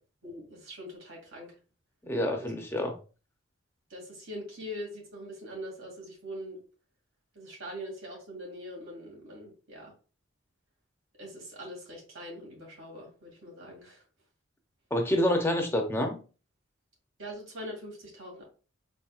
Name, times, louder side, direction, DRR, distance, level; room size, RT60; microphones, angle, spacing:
voice 1, 0.2-1.5 2.4-2.5 3.9-6.6 7.3-9.9 11.2-14.0 17.2-18.4, equal, 85° right, 2.4 m, -42 dB
voice 2, 2.1-2.9 14.9-16.2, left 1 dB, 10° left, 0.6 m, -27 dB
4.6 x 4.3 x 2.4 m
head